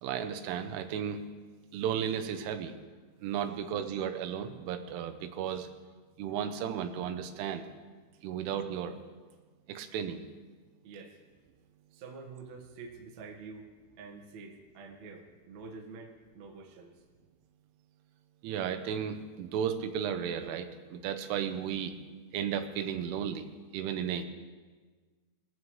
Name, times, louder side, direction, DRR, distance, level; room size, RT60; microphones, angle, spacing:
voice 1, 0.0-1.2 1.7-2.8 3.2-5.7 6.2-7.6 8.2-9.0 9.7-10.2 18.4-21.9 22.3-23.4 23.7-24.3, right 8 dB, 85° right, 8 dB, 3.3 m, -34 dB
voice 2, 10.8-11.2 11.9-13.7 14.0-17.0, right 4 dB, 60° right, 1 dB, 1.9 m, -47 dB
21.5 x 15.0 x 3.2 m, 1.4 s
omnidirectional pair, 5.5 m